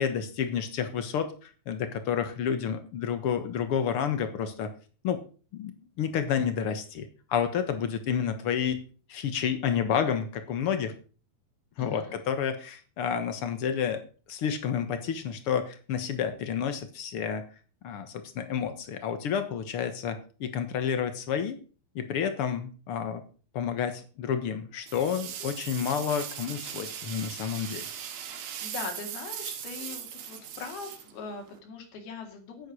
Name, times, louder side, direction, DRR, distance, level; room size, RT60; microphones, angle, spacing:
voice 1, 0.0-4.7 5.0-5.2 5.5-8.8 9.1-10.9 11.8-14.0 14.3-17.5 17.8-21.6 21.9-23.2 23.5-27.8, left 7 dB, 65° left, 10 dB, 1.4 m, -30 dB
voice 2, 11.8-12.2 28.6-32.7, left 4 dB, 90° left, 3 dB, 4.3 m, -41 dB
sound 1, 24.9-31.6, right 9 dB, 85° right, 3.4 m, -39 dB
9.8 x 9.3 x 6.2 m, 0.38 s
omnidirectional pair, 4.2 m